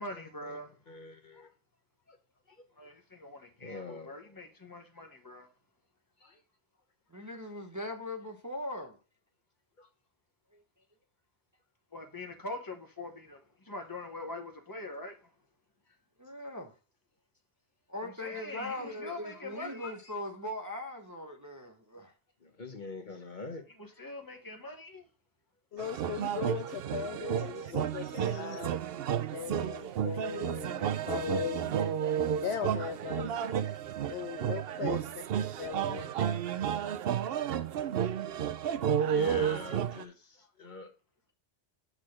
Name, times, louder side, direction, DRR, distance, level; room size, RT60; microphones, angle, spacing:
voice 1, 0.0-0.6 2.8-5.5 11.9-13.4 13.6-15.2 18.0-19.9 23.8-25.0, left 2 dB, 20° left, 1.1 m, -43 dB
voice 2, 0.9-1.5 2.1-2.2 2.5-2.7 3.6-4.4 6.2-6.4 9.8-9.9 22.4-23.6 23.9-24.0 29.3-29.5 39.1-40.9, left 3 dB, 45° left, 1.2 m, -45 dB
voice 3, 7.1-9.0 10.5-10.6 16.2-16.7 17.9-22.1 26.3-26.4 38.7-38.8, left 1 dB, 15° right, 0.9 m, -40 dB
voice 4, 25.7-28.7 29.3-31.7 32.4-33.3 34.1-35.2 35.6-36.1, left 8 dB, 65° left, 0.8 m, -38 dB
sound 1, 25.8-40.0, right 9 dB, 60° right, 0.7 m, -32 dB
6.6 x 3.8 x 6.4 m
omnidirectional pair, 1.2 m